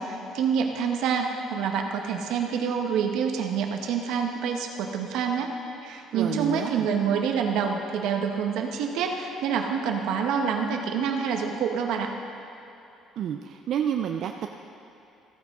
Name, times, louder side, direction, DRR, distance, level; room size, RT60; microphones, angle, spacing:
voice 1, 0.0-5.5 5.8-12.1, right 6 dB, 75° right, 3 dB, 1.1 m, -27 dB
voice 2, 6.1-6.9 13.2-14.5, right 9 dB, 55° right, 5 dB, 0.4 m, -29 dB
15.0 x 9.3 x 3.6 m, 2.9 s
cardioid pair, 150°, 0 cm